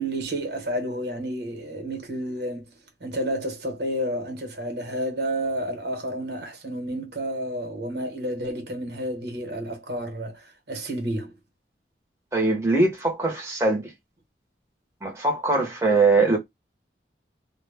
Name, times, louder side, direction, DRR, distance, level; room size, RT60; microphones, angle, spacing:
voice 1, 0.0-2.7 3.0-11.3, right 1 dB, 75° right, 1.0 m, -30 dB
voice 2, 12.3-13.9 15.0-16.4, right 3 dB, 15° right, 0.8 m, -21 dB
2.2 x 2.1 x 3.3 m
head